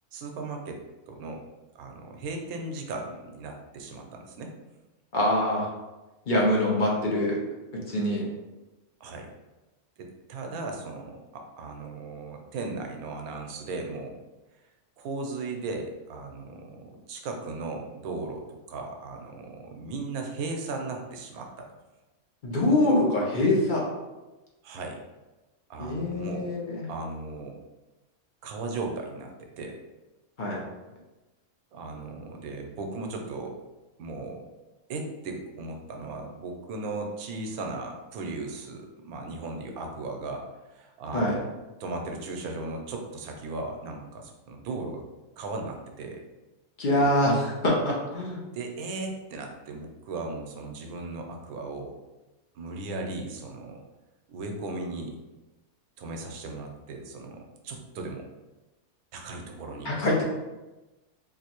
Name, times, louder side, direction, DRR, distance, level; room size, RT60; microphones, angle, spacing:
voice 1, 0.1-1.4 1.7-4.5 6.4-6.5 9.0-9.3 10.0-14.2 15.0-21.7 24.6-25.0 25.7-26.5 26.9-27.6 28.4-29.8 31.7-33.6 34.0-34.4 34.9-41.5 41.8-45.0 45.4-46.2 46.9-47.2 48.5-52.0 52.5-53.8 54.3-55.2 56.0-58.3 59.1-60.0, right 3 dB, 80° right, 3 dB, 1.1 m, -37 dB
voice 2, 5.1-5.7 6.3-7.4 7.9-8.2 22.4-23.9 25.8-26.8 30.4-30.6 41.1-41.4 46.8-48.4 59.8-60.2, left 1 dB, 50° left, -4 dB, 0.6 m, -24 dB
3.8 x 2.6 x 2.9 m, 1.1 s
omnidirectional pair, 1.5 m